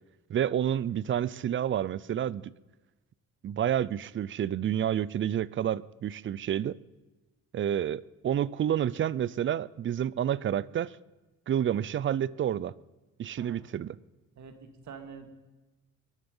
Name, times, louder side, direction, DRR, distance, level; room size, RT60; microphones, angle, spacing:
voice 1, 0.3-2.5 3.4-6.8 7.5-11.0 11.5-12.7 13.2-14.0, right 10 dB, 40° right, 0.5 m, -29 dB
voice 2, 14.4-15.4, right 6 dB, 65° right, 2.3 m, -46 dB
22.0 x 11.5 x 5.5 m
cardioid pair, 135°, 30 cm